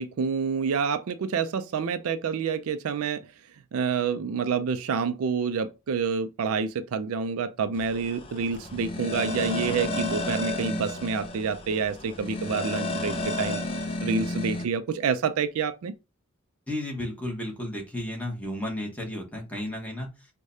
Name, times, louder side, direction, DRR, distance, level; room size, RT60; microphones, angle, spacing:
voice 1, 0.0-3.2 3.7-13.6 14.0-15.9, right 5 dB, 75° right, 0.4 m, -28 dB
sound 1, 7.7-14.7, left 1 dB, 25° left, 0.4 m, -32 dB
voice 2, 16.7-20.1, left 1 dB, 5° left, 1.0 m, -33 dB
4.8 x 2.2 x 2.6 m
head